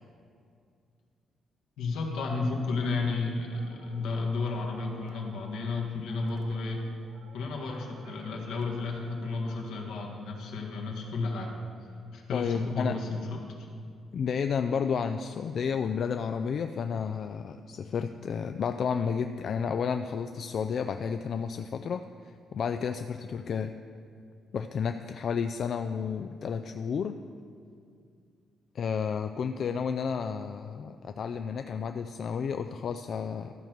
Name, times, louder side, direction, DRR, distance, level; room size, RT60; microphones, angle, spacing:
voice 1, 1.8-6.8 7.3-11.6 12.1-13.4, left 3 dB, 85° left, 0 dB, 1.6 m, -32 dB
sound 1, 2.3-9.9, right 6 dB, 85° right, 0.6 m, -55 dB
voice 2, 12.3-13.0 14.1-23.7 24.5-27.2 28.7-33.5, left 6 dB, 55° left, 7 dB, 0.3 m, -31 dB
13.5 x 4.5 x 6.6 m, 2.4 s
cardioid pair, 90°, 0 cm